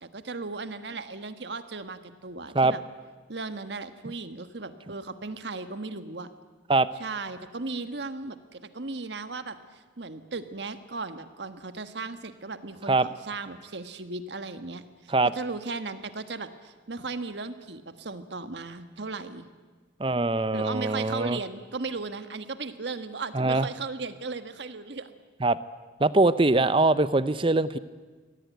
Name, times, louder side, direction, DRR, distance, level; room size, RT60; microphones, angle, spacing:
voice 1, 0.0-2.8 3.3-6.3 7.0-19.5 20.5-25.1, right 3 dB, 65° right, 10 dB, 1.4 m, -36 dB
voice 2, 20.0-21.4 23.3-23.7 25.4-25.6 26.0-27.8, right 2 dB, 25° right, 15 dB, 0.7 m, -22 dB
23.0 x 17.5 x 9.5 m, 1.4 s
head